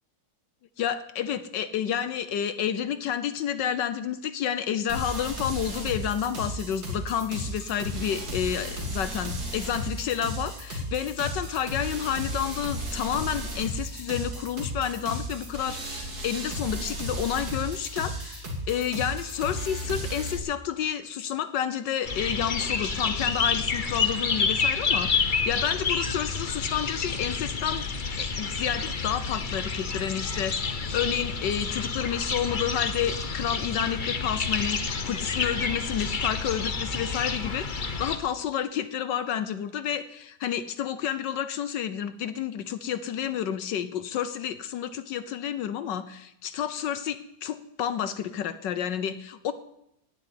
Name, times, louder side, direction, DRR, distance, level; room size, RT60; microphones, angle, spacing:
voice 1, 0.8-27.8 28.2-49.5, left 9 dB, 75° left, 13 dB, 1.4 m, -30 dB
sound 1, 4.9-20.4, equal, 55° right, 3.4 m, -34 dB
sound 2, 22.0-38.2, left 5 dB, 35° left, 0.9 m, -29 dB
18.0 x 7.1 x 9.6 m, 0.81 s
omnidirectional pair, 2.0 m